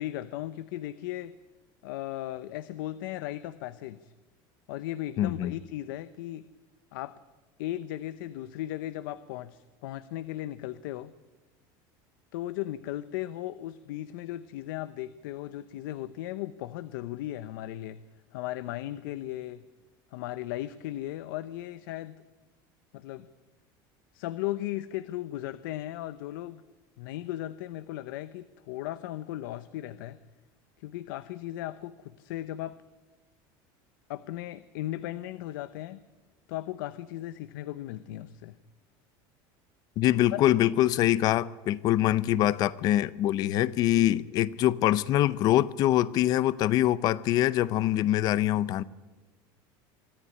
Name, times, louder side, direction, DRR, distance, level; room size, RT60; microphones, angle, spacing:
voice 1, 0.0-1.3 1.8-4.1 4.7-6.5 6.9-7.1 7.6-11.1 12.3-18.0 18.3-19.6 20.1-22.2 22.9-23.3 24.1-26.6 27.0-30.2 30.8-32.8 34.1-36.0 36.5-38.5 40.3-40.4, left 14 dB, 90° left, 0.8 m, -36 dB
voice 2, 5.2-5.5 40.0-48.8, left 13 dB, 35° left, 0.7 m, -24 dB
24.0 x 13.5 x 9.8 m
cardioid pair, 175°, 11 cm